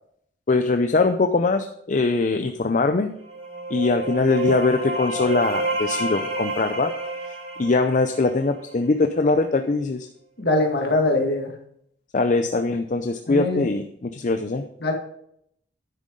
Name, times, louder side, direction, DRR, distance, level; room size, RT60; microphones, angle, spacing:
voice 1, 0.5-3.1 3.7-6.9 7.6-10.1 12.1-14.6, left 3 dB, 45° left, 7 dB, 0.5 m, -22 dB
sound 1, 3.1-8.8, right 2 dB, 40° right, 3.3 m, -29 dB
voice 2, 10.4-11.5 13.3-13.7 14.8-14.9, left 2 dB, 60° left, 2 dB, 1.8 m, -22 dB
10.0 x 7.7 x 3.8 m, 0.70 s
head